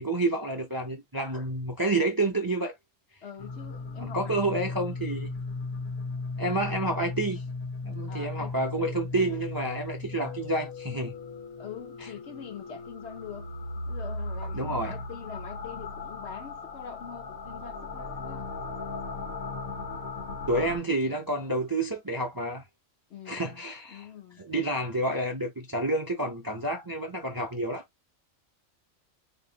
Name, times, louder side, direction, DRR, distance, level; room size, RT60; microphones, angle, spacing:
voice 1, 0.0-2.7 4.0-5.3 6.4-7.4 7.8-11.1 14.5-15.0 20.5-22.6 23.3-24.1 24.4-27.8, right 2 dB, 25° right, 0.5 m, -29 dB
voice 2, 3.2-4.7 8.1-8.6 11.6-13.5 13.9-18.5 23.1-23.6 23.9-24.4, left 7 dB, 60° left, 1.0 m, -44 dB
sound 1, 3.4-20.8, left 3 dB, 85° left, 1.8 m, -37 dB
3.4 x 2.6 x 4.0 m
omnidirectional pair, 1.5 m